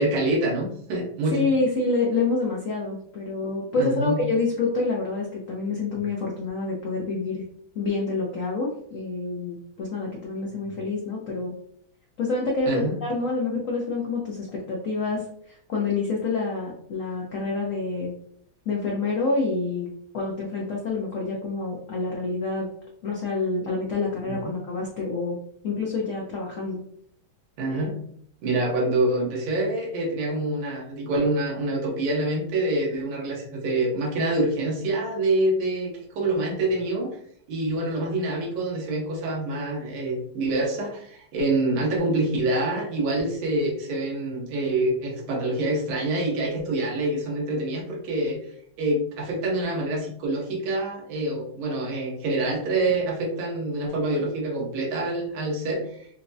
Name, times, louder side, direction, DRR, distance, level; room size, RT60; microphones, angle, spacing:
voice 1, 0.0-1.4 3.8-4.2 12.7-12.9 24.4-24.6 27.6-28.0 28.4-37.1 37.5-48.4 48.8-56.1, right 2 dB, 75° right, -1 dB, 1.8 m, -26 dB
voice 2, 1.3-7.4 7.7-11.5 12.2-18.1 18.7-19.9 20.1-22.7 23.0-25.4 25.6-26.8, left 3 dB, 80° left, -2 dB, 0.7 m, -27 dB
5.7 x 2.0 x 2.6 m, 0.64 s
omnidirectional pair, 2.3 m